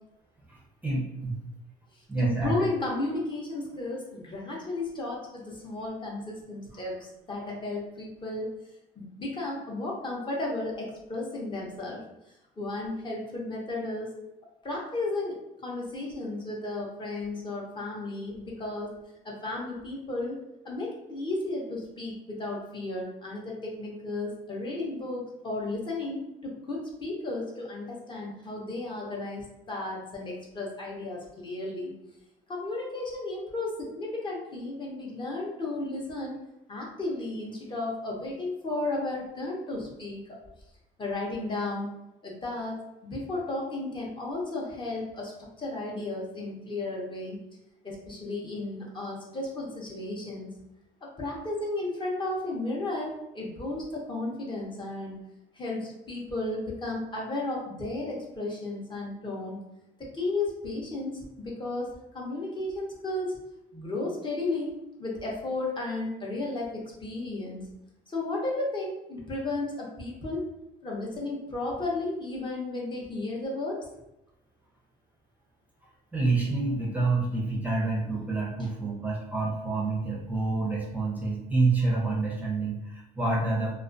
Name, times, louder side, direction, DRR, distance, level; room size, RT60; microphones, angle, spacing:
voice 1, 0.5-1.4 2.1-2.7 76.1-83.7, right 3 dB, 10° right, -4 dB, 0.5 m, -28 dB
voice 2, 1.9-8.5 9.0-12.0 12.6-14.1 14.6-15.3 15.6-18.9 19.2-20.4 20.6-31.9 32.5-36.3 36.7-40.4 41.0-41.9 42.2-45.3 45.6-47.4 47.8-50.5 51.0-55.2 55.5-59.6 60.0-63.4 63.7-64.7 65.0-67.7 68.1-70.4 70.8-73.8 78.6-78.7, left 2 dB, 30° left, -3 dB, 0.6 m, -34 dB
2.3 x 2.2 x 2.4 m, 0.89 s
cardioid pair, 110°, 17 cm